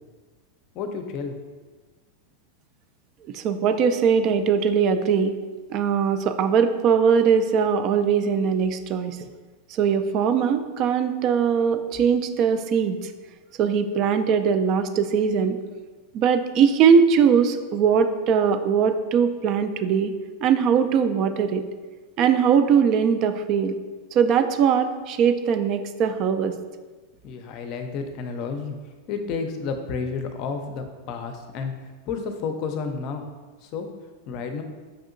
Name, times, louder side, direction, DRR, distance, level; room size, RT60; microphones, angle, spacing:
voice 1, 0.7-1.3 27.2-31.7 32.1-33.3 33.6-33.9 34.3-34.6, left 5 dB, 50° left, 6 dB, 0.5 m, -31 dB
voice 2, 3.3-5.4 5.7-9.2 9.7-13.1 13.6-15.6 16.1-20.1 20.4-21.6 22.2-23.8 24.1-26.5, right 7 dB, 45° right, 9 dB, 0.3 m, -21 dB
5.3 x 2.7 x 2.5 m, 1.3 s
hypercardioid pair, 115°, 0 cm